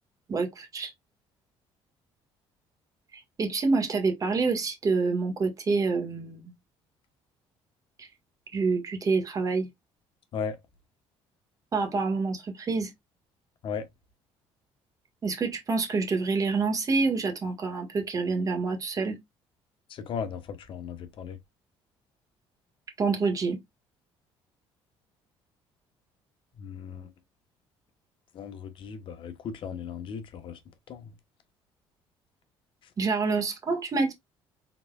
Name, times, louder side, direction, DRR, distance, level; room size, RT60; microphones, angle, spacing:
voice 1, 0.3-0.9 3.1-6.5 8.0-8.1 8.5-9.7 11.7-12.9 15.2-19.2 23.0-23.6 33.0-34.1, right 4 dB, 35° right, 1.6 m, -27 dB
voice 2, 19.9-21.4 26.6-27.1 28.3-30.6 30.9-31.1, left 6 dB, 55° left, 1.0 m, -36 dB
4.2 x 4.1 x 2.3 m
cardioid pair, 120°, 10 cm